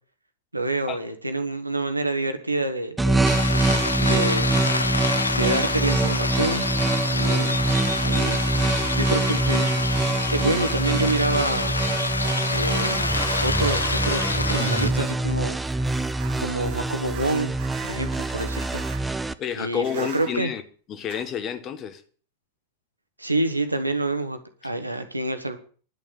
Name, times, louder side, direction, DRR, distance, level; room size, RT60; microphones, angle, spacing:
voice 1, 0.5-3.3 4.0-4.6 5.3-6.7 7.1-7.6 8.0-8.4 8.9-9.7 10.3-11.8 12.5-13.1 13.4-16.0 16.4-17.5 17.8-18.8 19.6-20.5 23.2-25.6, right 2 dB, 85° right, 1.5 m, -27 dB
sound 1, 3.0-19.3, right 2 dB, 5° right, 0.6 m, -25 dB
sound 2, 3.2-14.9, left 3 dB, 80° left, 0.7 m, -27 dB
sound 3, 12.2-19.0 19.8-20.4 21.0-21.3, right 9 dB, 45° right, 1.8 m, -42 dB
voice 2, 19.4-20.6 20.9-22.0, left 8 dB, 30° left, 1.4 m, -29 dB
11.0 x 7.0 x 8.7 m
figure-of-eight pair, 90°, 0 cm